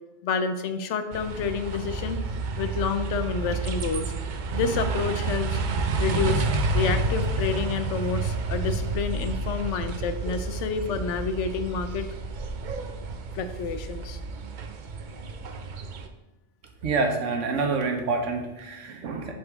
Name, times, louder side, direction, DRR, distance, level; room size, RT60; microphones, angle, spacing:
voice 1, 0.2-2.2 2.6-4.1 4.5-5.6 6.0-6.5 6.7-12.1 13.3-14.2, left 5 dB, 75° left, 9 dB, 0.9 m, -29 dB
sound 1, 1.1-16.1, right 3 dB, 55° right, 0.6 m, -30 dB
voice 2, 16.8-19.3, right 4 dB, 90° right, 4 dB, 1.2 m, -27 dB
7.8 x 4.3 x 3.6 m, 1.0 s
omnidirectional pair, 1.2 m